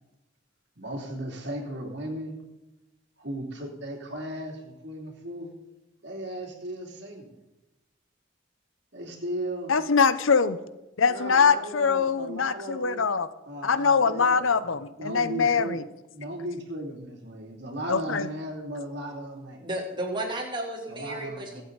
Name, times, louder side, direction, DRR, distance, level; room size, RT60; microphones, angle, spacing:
voice 1, 0.8-2.4 3.2-5.5 6.0-7.3 8.9-9.8 11.0-13.2 13.5-14.5 15.0-15.8 16.1-19.6 20.9-21.6, right 1 dB, 60° right, 0 dB, 3.1 m, -36 dB
voice 2, 9.7-10.6 11.0-13.3 13.6-15.8 17.9-18.3, left 5 dB, 80° left, 14 dB, 0.8 m, -23 dB
voice 3, 19.6-21.6, right 1 dB, 25° right, -2 dB, 3.0 m, -33 dB
23.0 x 8.3 x 4.0 m, 1.0 s
head